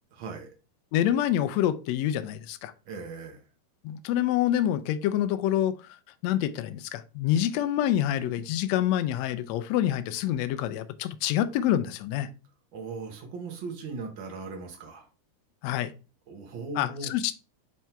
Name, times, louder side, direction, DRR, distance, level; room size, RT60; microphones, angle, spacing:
voice 1, 0.1-0.5 2.8-3.4 12.7-15.1 16.3-17.1, right 4 dB, 55° right, 3 dB, 1.4 m, -38 dB
voice 2, 0.9-2.7 3.8-5.8 6.2-12.3 15.6-15.9 16.8-17.4, left 11 dB, 85° left, 12 dB, 1.5 m, -26 dB
7.4 x 3.4 x 4.5 m, 0.31 s
omnidirectional pair, 3.7 m